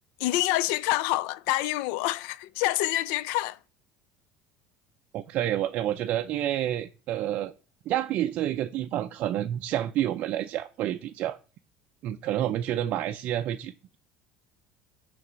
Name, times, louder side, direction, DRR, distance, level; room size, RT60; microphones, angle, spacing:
voice 1, 0.2-3.6, left 16 dB, 75° left, 0.3 m, -27 dB
voice 2, 5.1-7.5 7.9-11.4 12.0-14.0, right 12 dB, 45° right, 0.4 m, -29 dB
6.7 x 3.4 x 6.2 m
cardioid pair, 155°, 3 cm